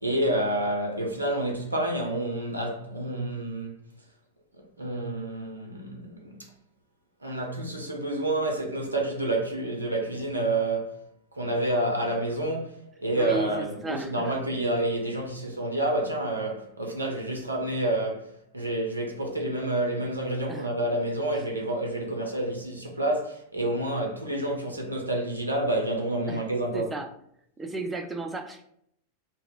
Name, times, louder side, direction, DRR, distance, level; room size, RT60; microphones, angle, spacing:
voice 1, 0.0-3.8 4.8-6.5 7.2-11.0 11.3-26.9, right 1 dB, 80° right, 0.5 m, -29 dB
voice 2, 13.2-14.3 20.5-20.7 26.3-26.4 26.7-27.1 27.6-28.6, right 2 dB, 15° right, 0.3 m, -34 dB
2.1 x 2.1 x 3.4 m
figure-of-eight pair, 90°, 0 cm